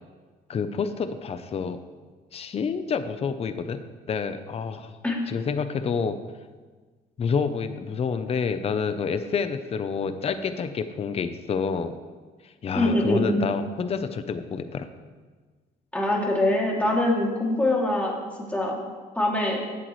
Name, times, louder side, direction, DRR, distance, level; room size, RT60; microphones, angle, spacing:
voice 1, 0.5-1.8 2.3-3.8 4.1-4.9 5.3-6.2 7.2-11.9 12.4-14.9, left 6 dB, 35° left, 10 dB, 0.7 m, -28 dB
voice 2, 12.7-13.4 15.9-18.1 18.5-18.8 19.1-19.6, left 1 dB, 10° left, -3 dB, 2.7 m, -23 dB
17.0 x 8.2 x 3.2 m, 1.4 s
cardioid pair, 110°, 17 cm